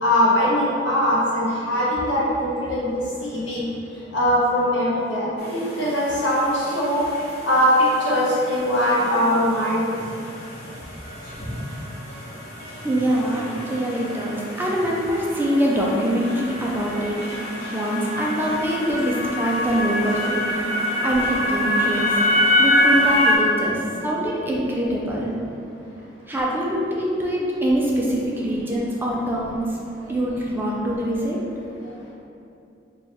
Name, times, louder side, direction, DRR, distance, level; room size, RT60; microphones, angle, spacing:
voice 1, 0.0-3.7 4.1-7.0 7.4-10.0, equal, 85° left, -7 dB, 1.0 m, -21 dB
sound 1, 5.4-23.4, left 1 dB, 60° left, 0.8 m, -26 dB
voice 2, 12.8-17.2 17.7-20.5 20.8-22.2 22.6-25.3 26.3-29.6 30.1-31.4, equal, 10° right, -4 dB, 0.4 m, -24 dB
3.3 x 2.3 x 4.1 m, 2.6 s
head